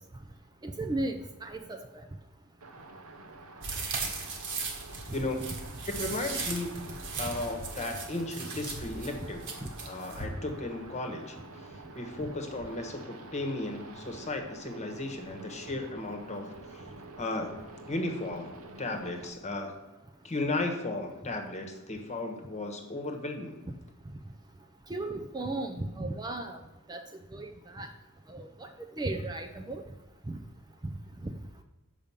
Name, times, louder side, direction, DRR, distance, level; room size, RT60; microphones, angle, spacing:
voice 1, 0.6-1.6 12.2-12.3 24.9-26.6 26.9-27.0 27.3-27.9 28.3-28.5 29.0-29.8 30.3-30.4, right 2 dB, 20° right, 4 dB, 0.5 m, -35 dB
sound 1, 2.6-19.3, right 2 dB, 85° right, 0.8 m, -48 dB
sound 2, 3.6-10.3, right 4 dB, 60° right, 1.5 m, -38 dB
voice 2, 5.1-5.6 5.9-9.5 9.9-11.4 11.9-16.8 17.2-17.5 17.9-18.5 18.8-19.8 20.2-23.6, left 2 dB, 30° left, 4 dB, 1.2 m, -35 dB
6.9 x 5.1 x 7.2 m, 1.1 s
head